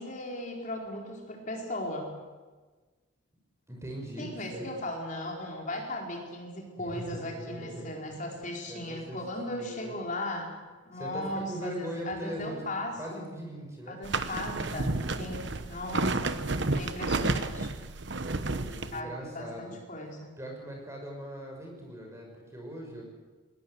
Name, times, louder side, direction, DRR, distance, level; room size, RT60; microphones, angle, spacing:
voice 1, 0.0-2.1 4.2-10.6 10.8-13.3 13.9-16.4 16.7-17.8 18.9-20.3, left 1 dB, 40° left, 0 dB, 4.5 m, -37 dB
voice 2, 3.7-4.7 6.8-8.4 8.6-9.2 9.5-9.9 10.9-12.6 13.0-14.0 18.2-19.7 20.4-23.1, right 1 dB, 15° right, 1 dB, 5.8 m, -40 dB
sound 1, 14.0-19.0, right 2 dB, 60° right, 1.1 m, -31 dB
20.5 x 20.0 x 8.0 m, 1.3 s
head